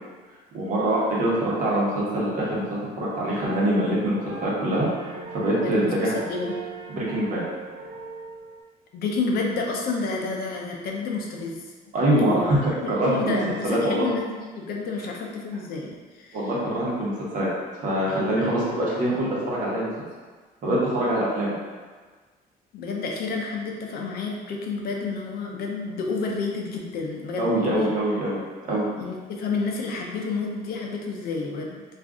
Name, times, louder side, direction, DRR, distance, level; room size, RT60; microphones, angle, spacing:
voice 1, 0.5-2.6 3.0-6.1 6.9-7.4 11.9-14.0 16.3-17.5 17.8-19.9 20.6-21.6 27.4-28.4 28.7-28.9, right 1 dB, 55° right, -6 dB, 1.1 m, -24 dB
sound 1, 3.4-8.6, right 4 dB, 75° right, 0.5 m, -38 dB
voice 2, 5.6-6.5 8.9-11.6 12.2-12.4 12.8-16.4 22.7-27.9 29.0-31.8, left 4 dB, 65° left, 0 dB, 0.5 m, -30 dB
2.5 x 2.4 x 3.5 m, 1.4 s
cardioid pair, 110°, 17 cm